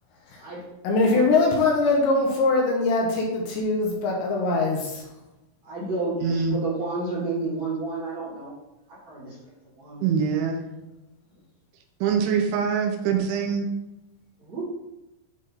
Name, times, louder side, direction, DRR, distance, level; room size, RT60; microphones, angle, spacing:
voice 1, 0.8-5.0, left 3 dB, 75° left, -1 dB, 2.9 m, -22 dB
voice 2, 5.6-8.5 8.9-9.4 9.8-10.0 14.4-14.6, right 3 dB, 50° right, -9 dB, 2.1 m, -31 dB
voice 3, 6.2-6.6 10.0-10.6 12.0-13.7, right 6 dB, 90° right, 3 dB, 3.2 m, -24 dB
8.7 x 3.7 x 4.1 m, 0.95 s
omnidirectional pair, 5.7 m